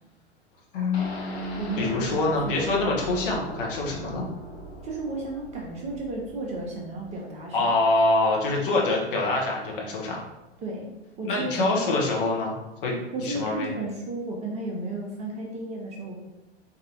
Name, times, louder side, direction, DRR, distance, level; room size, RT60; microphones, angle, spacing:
voice 1, 0.7-4.2 7.5-10.2 11.2-12.5 12.8-13.7, left 2 dB, 55° left, -2 dB, 1.0 m, -25 dB
sound 1, 0.9-8.8 9.2-9.3 9.6-9.7, equal, 80° left, 0.8 m, -40 dB
voice 2, 1.6-2.8 4.8-7.8 10.6-10.9 11.2-12.0 13.1-16.2, right 2 dB, 20° right, 0 dB, 0.6 m, -33 dB
4.0 x 2.7 x 2.9 m, 1.0 s
figure-of-eight pair, 90°, 32 cm